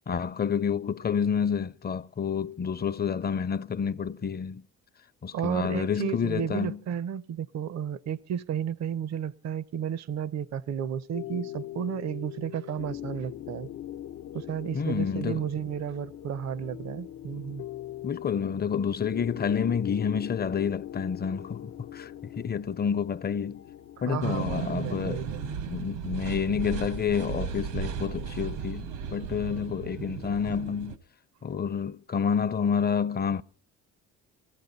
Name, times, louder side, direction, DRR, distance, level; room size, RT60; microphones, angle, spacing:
voice 1, 0.1-4.6 5.2-6.8 14.7-15.4 18.0-23.6 24.0-25.3 25.7-31.0 31.4-33.4, left 7 dB, 30° left, 0.6 m, -29 dB
voice 2, 5.3-13.7 14.3-17.6 24.1-25.5, right 8 dB, 60° right, 0.7 m, -33 dB
sound 1, 11.1-25.5, left 12 dB, 70° left, 0.8 m, -41 dB
sound 2, 24.2-31.0, right 7 dB, 85° right, 1.5 m, -35 dB
19.0 x 15.0 x 4.0 m
cardioid pair, 90°, 30 cm